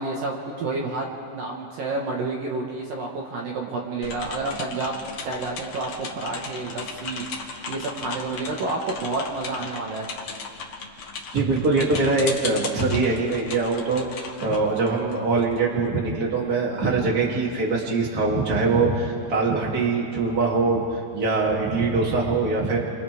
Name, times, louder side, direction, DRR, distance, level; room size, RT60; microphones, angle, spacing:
voice 1, 0.0-4.9 5.2-10.1, right 3 dB, 60° right, -1 dB, 2.5 m, -30 dB
sound 1, 4.0-15.6, left 4 dB, 80° left, 1.4 m, -36 dB
voice 2, 11.3-22.8, right 3 dB, 25° right, -3 dB, 2.3 m, -23 dB
29.0 x 27.0 x 3.6 m, 2.5 s
omnidirectional pair, 5.6 m